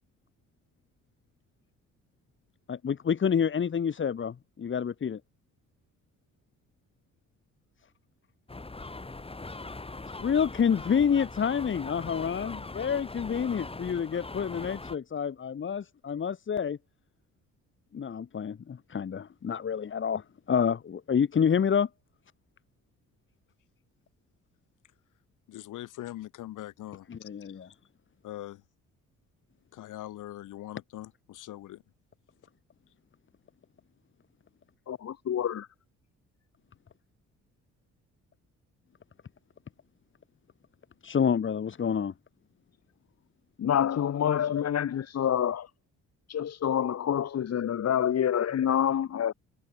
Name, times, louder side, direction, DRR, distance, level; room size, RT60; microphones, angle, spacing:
voice 1, 2.7-5.2 10.2-16.8 17.9-21.9 27.1-27.7 41.0-42.1, left 7 dB, 40° left, 1.6 m, -28 dB
sound 1, 8.5-15.0, left 3 dB, 20° left, 6.8 m, -41 dB
voice 2, 25.5-27.3 28.2-28.6 29.7-31.8, left 14 dB, 85° left, 6.3 m, -42 dB
voice 3, 34.9-35.7 43.6-45.7 46.3-49.3, left 9 dB, 55° left, 2.2 m, -27 dB
cardioid pair, 90°, 30 cm